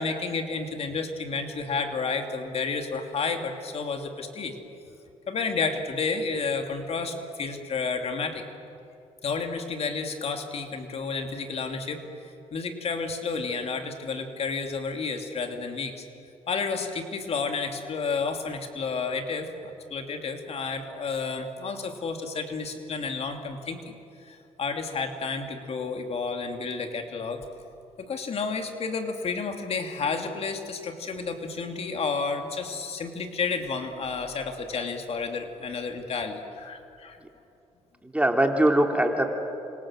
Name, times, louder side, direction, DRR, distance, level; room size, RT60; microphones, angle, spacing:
voice 1, 0.0-4.6 5.3-8.4 9.2-12.0 12.5-16.0 16.5-24.0 24.2-27.4 28.0-37.2, left 4 dB, 55° left, 4 dB, 2.9 m, -31 dB
voice 2, 38.0-39.3, right 1 dB, 10° right, 3 dB, 3.0 m, -22 dB
29.0 x 25.5 x 7.7 m, 2.6 s
cardioid pair, 85°, 12 cm